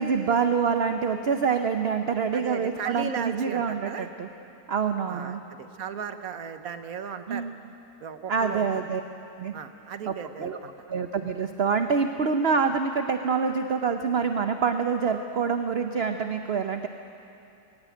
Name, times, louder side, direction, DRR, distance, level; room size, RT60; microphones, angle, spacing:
voice 1, 0.0-4.3 4.7-5.4 7.3-7.6 8.3-9.0 9.4-9.5 10.1-10.2 10.4-10.6 10.9-16.9, right 5 dB, 50° right, 6 dB, 0.9 m, -26 dB
voice 2, 2.3-4.1 5.1-7.5 8.0-8.8 9.5-10.7, right 7 dB, 65° right, 9 dB, 1.4 m, -36 dB
21.0 x 17.0 x 9.1 m, 2.7 s
omnidirectional pair, 1.7 m